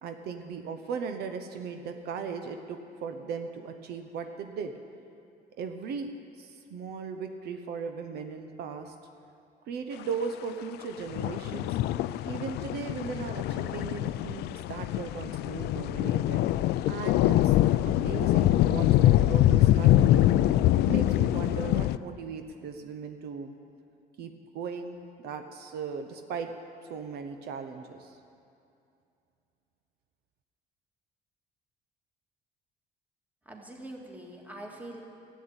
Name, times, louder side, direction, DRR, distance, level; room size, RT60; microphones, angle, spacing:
voice 1, 0.0-4.7 5.6-6.1 6.4-8.9 9.7-11.8 12.3-16.5 16.9-17.6 17.8-23.5 24.2-26.5 26.9-28.2, right 5 dB, 75° right, 6 dB, 0.9 m, -37 dB
sound 1, 11.1-22.0, left 14 dB, 75° left, 0.4 m, -24 dB
voice 2, 33.5-35.0, right 1 dB, 10° right, 0 dB, 1.9 m, -43 dB
12.5 x 8.5 x 8.9 m, 2.6 s
cardioid pair, 110°, 17 cm